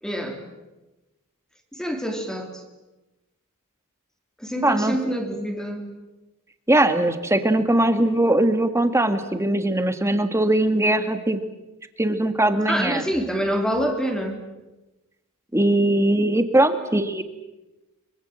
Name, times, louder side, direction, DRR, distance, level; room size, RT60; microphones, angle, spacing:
voice 1, 0.0-0.4 1.7-2.6 4.4-5.9 12.7-14.4, equal, 5° left, 4 dB, 3.0 m, -26 dB
voice 2, 4.6-5.0 6.7-11.4 12.0-13.0 15.5-17.2, right 1 dB, 10° right, 8 dB, 1.7 m, -20 dB
25.0 x 23.5 x 7.6 m, 1.0 s
head